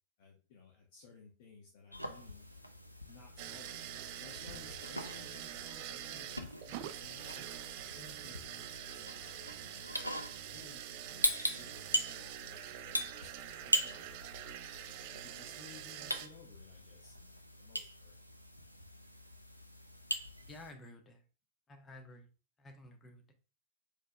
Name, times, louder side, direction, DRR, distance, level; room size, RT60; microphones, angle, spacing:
voice 1, 0.2-2.5 3.1-7.5 8.0-9.8 10.5-10.8 11.1-13.3 13.6-14.1 14.8-18.1, left 4 dB, 50° left, -1 dB, 1.0 m, -58 dB
sound 1, 1.9-20.7, equal, 90° left, 0.5 m, -41 dB
sound 2, 3.4-16.3, right 12 dB, 45° right, 0.3 m, -45 dB
voice 2, 20.5-21.2 21.7-22.3 22.6-23.3, left 1 dB, 20° left, 5 dB, 0.9 m, -52 dB
4.5 x 4.5 x 2.2 m, 0.35 s
figure-of-eight pair, 90°, 0 cm